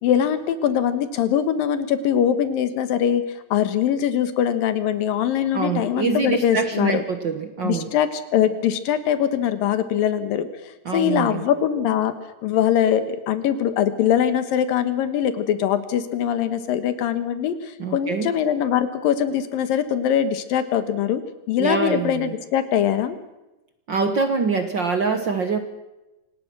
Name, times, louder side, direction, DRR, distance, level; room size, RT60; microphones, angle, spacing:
voice 1, 0.0-3.2 3.5-7.0 7.6-10.5 10.9-12.1 12.4-21.2 21.5-23.2, left 9 dB, 85° left, 11 dB, 3.1 m, -22 dB
voice 2, 5.5-7.9 10.8-11.4 17.8-18.3 21.6-22.3 23.9-25.6, right 5 dB, 60° right, 7 dB, 1.2 m, -24 dB
26.0 x 18.5 x 6.1 m, 1.0 s
omnidirectional pair, 3.9 m